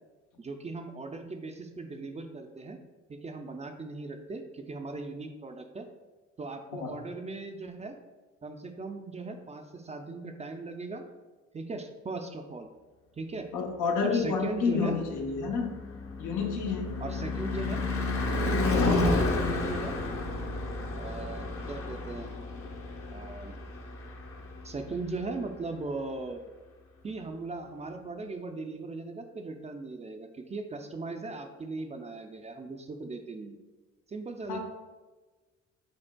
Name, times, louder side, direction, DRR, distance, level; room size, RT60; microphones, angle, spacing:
voice 1, 0.4-2.8 3.1-5.9 6.4-8.0 8.4-11.0 11.5-12.7 13.1-13.5 14.0-15.0 17.0-17.8 18.8-20.0 20.9-22.3 23.1-23.6 24.6-26.4 27.0-33.6 34.1-34.6, right 3 dB, 25° right, 6 dB, 0.4 m, -38 dB
voice 2, 13.5-15.8 16.2-16.9 18.6-18.9 34.5-34.6, left 5 dB, 85° left, 2 dB, 0.8 m, -30 dB
Car passing by / Truck / Engine, 14.7-24.9, left 2 dB, 45° left, 0.8 m, -31 dB
5.1 x 4.1 x 2.2 m, 1.3 s
cardioid pair, 90°, 30 cm